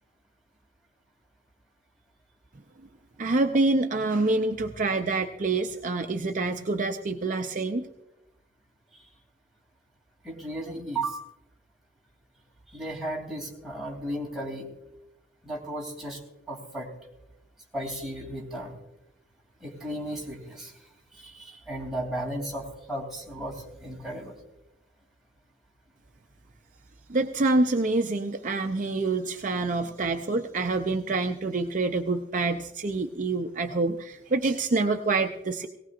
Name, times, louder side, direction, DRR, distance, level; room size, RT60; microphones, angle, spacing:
voice 1, 3.2-7.9 27.1-35.7, right 3 dB, 40° right, 5 dB, 0.5 m, -26 dB
voice 2, 10.2-11.2 12.7-14.7 15.4-16.2 16.5-16.9 17.7-18.8 19.6-20.7 21.1-24.4, right 1 dB, ahead, -3 dB, 2.8 m, -35 dB
18.5 x 18.0 x 2.5 m, 0.95 s
head